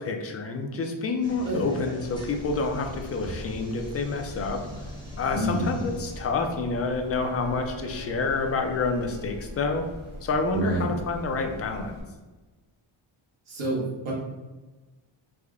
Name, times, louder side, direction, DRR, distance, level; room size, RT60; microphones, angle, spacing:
voice 1, 0.0-4.6 5.2-9.8 10.2-12.0, left 3 dB, 30° left, 4 dB, 0.4 m, -28 dB
sound 1, 1.2-6.2, left 1 dB, 10° left, 0.8 m, -43 dB
sound 2, 2.0-12.0, left 1 dB, 20° right, 1.0 m, -42 dB
voice 2, 5.3-5.7 10.5-10.9 13.5-14.1, right 1 dB, 70° right, -5 dB, 1.4 m, -28 dB
Bowed string instrument, 6.9-10.4, left 1 dB, 45° right, 0.6 m, -47 dB
3.5 x 2.1 x 3.5 m, 1.2 s
wide cardioid pair, 130°, 50 cm